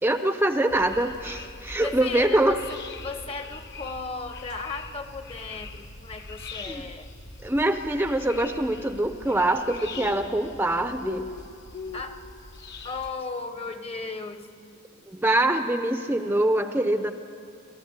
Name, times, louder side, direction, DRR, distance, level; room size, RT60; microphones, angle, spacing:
voice 1, 0.0-2.6 6.7-6.8 7.4-11.3 15.1-17.1, right 1 dB, 10° right, 8 dB, 0.6 m, -24 dB
sound 1, 0.7-13.1, left 4 dB, 55° left, 1.4 m, -41 dB
voice 2, 1.8-2.8 3.0-7.1 11.9-12.2 12.8-15.2, left 4 dB, 30° left, 10 dB, 1.1 m, -36 dB
30.0 x 13.0 x 8.1 m, 2.5 s
head